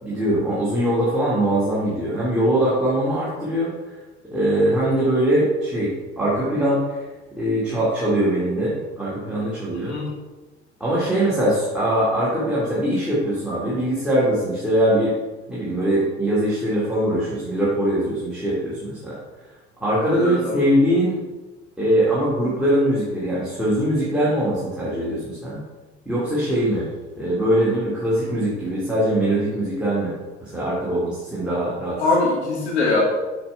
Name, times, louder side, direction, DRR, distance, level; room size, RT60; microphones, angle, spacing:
voice 1, 0.0-3.7 4.3-6.8 7.4-10.0 10.8-15.2 15.5-19.1 19.8-21.2 21.8-25.6 26.1-26.9 27.2-30.1 30.4-32.0, right 1 dB, 5° right, -9 dB, 2.3 m, -22 dB
voice 2, 9.7-10.1 20.1-20.7 32.0-33.0, left 3 dB, 70° left, -3 dB, 2.0 m, -22 dB
8.4 x 5.4 x 3.4 m, 1.2 s
figure-of-eight pair, 65°, 34 cm